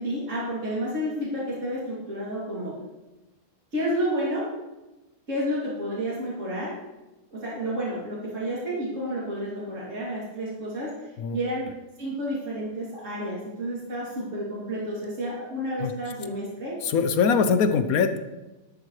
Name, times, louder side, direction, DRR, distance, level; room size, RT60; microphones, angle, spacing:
voice 1, 0.0-2.8 3.7-4.5 5.3-6.7 7.3-10.9 11.3-11.7 12.0-16.8, equal, 45° right, -8 dB, 3.2 m, -30 dB
voice 2, 16.8-18.2, left 5 dB, 65° left, 9 dB, 1.2 m, -22 dB
12.5 x 11.5 x 3.2 m, 1.1 s
omnidirectional pair, 1.8 m